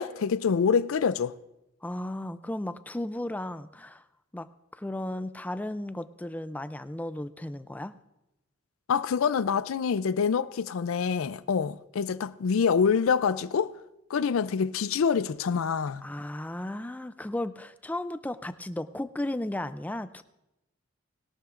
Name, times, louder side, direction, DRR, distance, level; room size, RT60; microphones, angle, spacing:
voice 1, 0.0-1.3 8.9-13.7 14.1-16.0, left 6 dB, 80° left, 0.4 m, -26 dB
voice 2, 1.8-4.0 4.3-4.5 4.7-8.0 16.0-20.2, left 1 dB, 10° left, 0.3 m, -35 dB
20.5 x 12.0 x 2.5 m
head